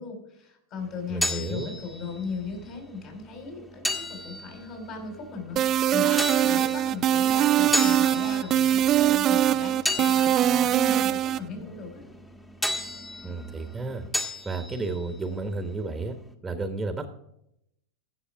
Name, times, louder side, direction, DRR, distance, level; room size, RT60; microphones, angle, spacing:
voice 1, 0.0-12.0, left 4 dB, 45° left, 2 dB, 5.0 m, -38 dB
sound 1, 0.8-16.3, left 1 dB, 10° left, 1.4 m, -35 dB
voice 2, 1.1-1.7 13.2-14.0 14.4-16.2 16.4-17.1, right 3 dB, 10° right, 7 dB, 1.3 m, -32 dB
sound 2, 5.6-11.4, right 11 dB, 35° right, 0.3 m, -22 dB
15.5 x 6.5 x 4.7 m, 0.78 s
hypercardioid pair, 105°, 0 cm